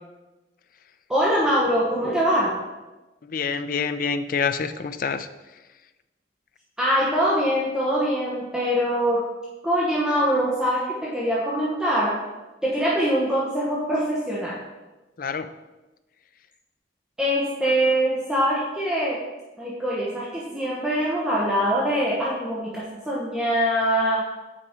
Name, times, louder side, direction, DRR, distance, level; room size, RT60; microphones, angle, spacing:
voice 1, 1.1-2.6 6.8-9.3 9.6-12.2 12.6-14.6 17.2-19.2 19.6-24.3, equal, 5° right, -6 dB, 1.0 m, -23 dB
voice 2, 3.2-5.3 15.2-15.5, left 5 dB, 50° left, 11 dB, 0.4 m, -27 dB
7.1 x 4.9 x 5.0 m, 1.1 s
head